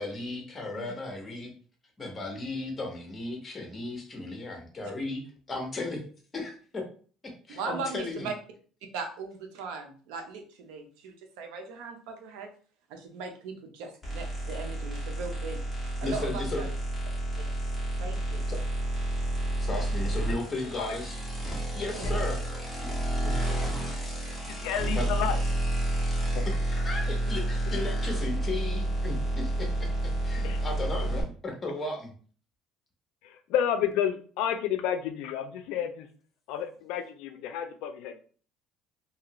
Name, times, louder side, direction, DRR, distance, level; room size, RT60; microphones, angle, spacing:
voice 1, 0.0-1.5 2.0-6.0 6.3-6.8 7.5-8.3 16.0-16.6 18.5-18.6 19.6-21.1 21.7-22.4 23.2-23.3 23.6-23.7 24.9-25.1 26.5-32.1, left 2 dB, 20° left, 2 dB, 0.9 m, -35 dB
voice 2, 7.5-8.3 8.9-12.5 12.9-16.7 17.4-17.5 18.0-18.4 22.0-22.1, right 4 dB, 90° right, 5 dB, 0.6 m, -39 dB
sound 1, 14.0-31.2, right 1 dB, ahead, 1.1 m, -30 dB
voice 3, 24.5-25.4 26.3-26.5 30.4-30.6 33.2-36.1 36.5-38.2, left 9 dB, 80° left, 8 dB, 0.4 m, -30 dB
2.8 x 2.4 x 2.9 m, 0.42 s
cardioid pair, 130°, 0 cm